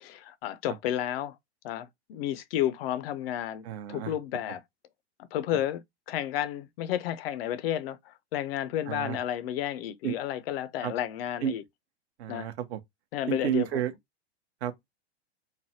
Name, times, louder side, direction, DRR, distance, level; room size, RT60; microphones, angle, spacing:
voice 1, 0.0-1.4 1.6-4.6 5.2-11.6 12.3-12.5 13.1-13.8, left 11 dB, 55° left, 0.4 m, -32 dB
voice 2, 3.6-4.1 8.9-9.2 10.0-10.1 10.8-10.9 11.4-11.5 12.2-12.8 13.3-13.9 14.6-14.9, right 10 dB, 65° right, 0.7 m, -31 dB
3.2 x 2.1 x 2.7 m
hypercardioid pair, 125°, 35 cm